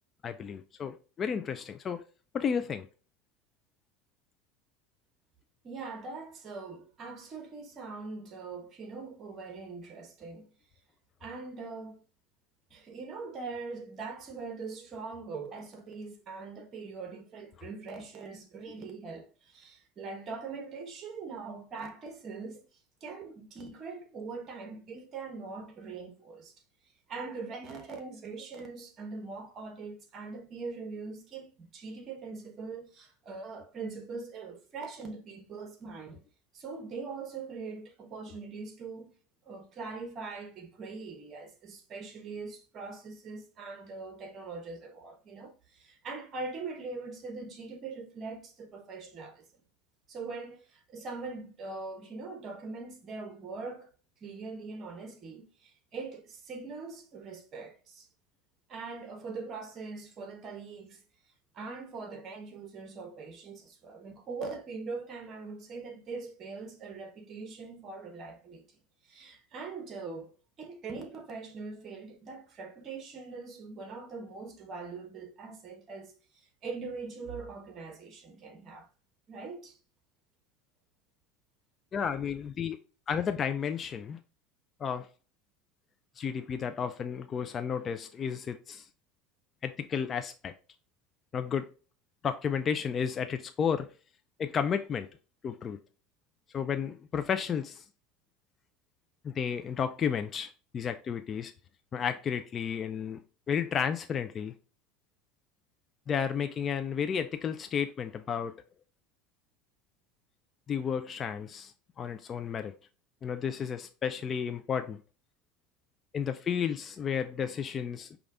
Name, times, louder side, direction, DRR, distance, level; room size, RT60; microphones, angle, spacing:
voice 1, 0.2-2.0 2.3-2.9 81.9-82.8 83.1-84.2 84.8-85.1 86.2-88.9 89.6-90.5 91.3-91.7 92.2-93.9 94.4-95.1 95.4-95.8 96.5-97.8 99.2-101.5 101.9-103.2 103.5-104.5 106.1-108.5 110.7-112.7 113.2-115.0 116.1-118.2, left 7 dB, 35° left, 0.4 m, -32 dB
voice 2, 5.6-10.5 11.2-12.0 12.7-22.6 23.0-26.5 27.1-36.2 36.5-39.1 39.4-49.4 50.1-53.9 54.2-58.1 58.7-61.0 61.5-68.6 69.1-70.3 70.6-78.9 79.3-79.8, right 4 dB, 40° right, 1.2 m, -42 dB
5.2 x 2.4 x 3.7 m
supercardioid pair, 110°, 0 cm